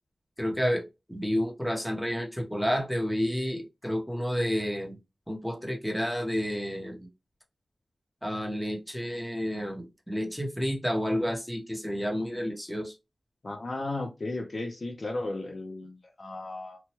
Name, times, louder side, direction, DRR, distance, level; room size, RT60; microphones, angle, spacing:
voice 1, 0.4-0.8 1.1-5.0 5.3-7.1 8.2-12.9, equal, 5° left, 0.9 m, -30 dB
voice 2, 13.4-16.8, left 2 dB, 50° left, 0.6 m, -35 dB
3.0 x 2.2 x 3.0 m
wide cardioid pair, 100°, 0 cm